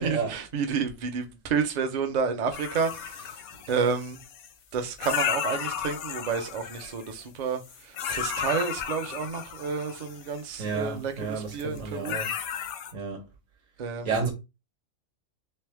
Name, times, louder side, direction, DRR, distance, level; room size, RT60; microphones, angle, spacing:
voice 1, 0.0-3.3 3.7-4.2 4.7-12.2 13.8-14.1, right 5 dB, 45° right, 0.6 m, -30 dB
sound 1, 2.5-4.5 5.0-7.2 7.6-10.4 11.6-11.8 12.0-12.9, left 9 dB, 90° left, 1.1 m, -34 dB
voice 2, 10.6-12.3 12.9-13.3 14.0-14.3, right 5 dB, 70° right, 1.5 m, -31 dB
3.3 x 3.2 x 3.4 m
omnidirectional pair, 1.4 m